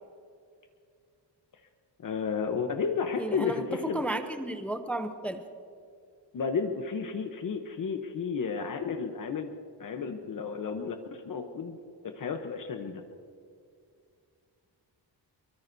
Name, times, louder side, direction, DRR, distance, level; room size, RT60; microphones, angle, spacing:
voice 1, 2.0-4.1 6.3-9.5 9.8-11.0 11.3-11.8 12.0-13.0, left 5 dB, 50° left, 5 dB, 0.9 m, -32 dB
voice 2, 3.2-5.4, right 1 dB, 5° left, 7 dB, 0.5 m, -33 dB
23.5 x 22.5 x 2.7 m, 2.3 s
wide cardioid pair, 165°, 43 cm